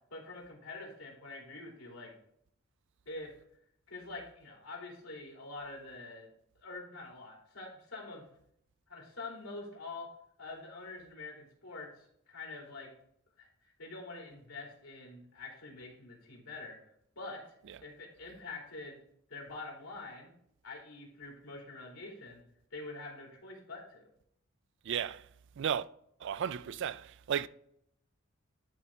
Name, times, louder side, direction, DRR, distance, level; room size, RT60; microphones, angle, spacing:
voice 1, 0.1-2.1 3.1-3.4 3.9-6.3 6.5-8.3 8.9-10.1 10.4-12.9 13.4-13.5 13.8-16.8 17.2-17.5 17.8-19.0 19.3-20.3 20.6-22.4 22.7-24.1, left 3 dB, 85° left, 3.0 m, -46 dB
voice 2, 24.9-25.2 25.6-25.8 26.2-27.5, right 8 dB, 60° right, 0.4 m, -34 dB
11.5 x 4.2 x 3.6 m
head